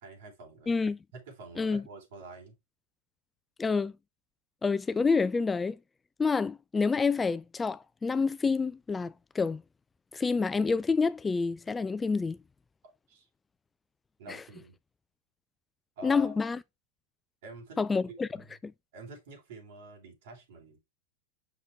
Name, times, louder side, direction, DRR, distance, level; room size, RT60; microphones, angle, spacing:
voice 1, 0.0-0.7 1.1-2.5 13.1-13.3 14.2-14.7 16.0-16.3 17.4-17.8 18.1-18.4 18.9-20.8, right 2 dB, 70° right, 3.3 m, -47 dB
voice 2, 0.7-1.0 1.6-1.8 3.6-3.9 4.6-5.8 6.2-9.6 10.1-12.4 14.3-14.4 16.0-16.6 17.8-18.3 18.6-18.7, left 4 dB, 15° left, 0.3 m, -28 dB
6.0 x 5.5 x 3.2 m
hypercardioid pair, 105°, 0 cm